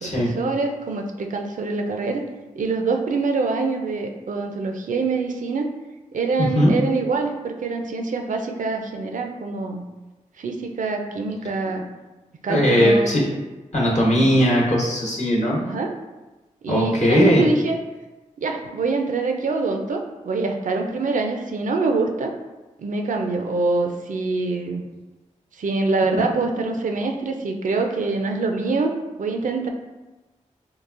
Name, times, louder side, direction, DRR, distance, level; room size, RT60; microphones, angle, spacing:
voice 1, 0.0-2.2 2.6-5.7 6.1-9.8 10.4-11.9 12.4-13.1 15.6-15.9 16.6-17.8 18.4-22.3 22.8-24.8 25.6-29.7, right 3 dB, 75° right, 4 dB, 0.4 m, -25 dB
voice 2, 6.4-6.7 12.5-13.2 13.7-15.6 16.7-17.4, equal, 60° left, -4 dB, 1.1 m, -18 dB
3.8 x 2.4 x 2.4 m, 1.1 s
cardioid pair, 45°, 14 cm